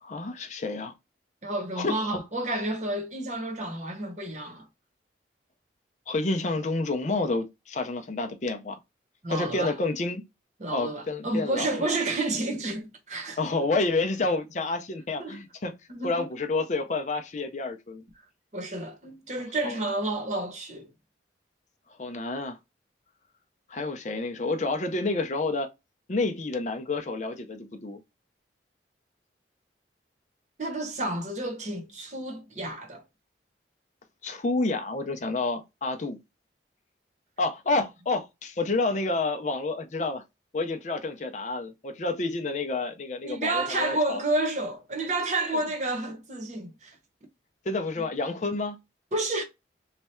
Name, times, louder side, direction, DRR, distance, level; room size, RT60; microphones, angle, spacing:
voice 1, 0.0-0.9 1.8-2.2 6.1-8.8 9.3-10.2 10.7-12.0 13.4-15.7 16.0-18.0 19.6-19.8 22.0-22.6 23.7-25.7 26.1-28.0 34.2-36.2 37.4-40.2 40.5-44.2 45.5-45.6 47.7-48.8, left 3 dB, 40° left, 0.5 m, -29 dB
voice 2, 1.4-4.7 9.2-9.7 10.6-13.4 15.2-15.4 15.9-16.1 18.5-20.9 30.6-33.0 43.2-47.0 49.1-49.4, right 2 dB, 40° right, 0.9 m, -30 dB
3.2 x 2.3 x 4.2 m
head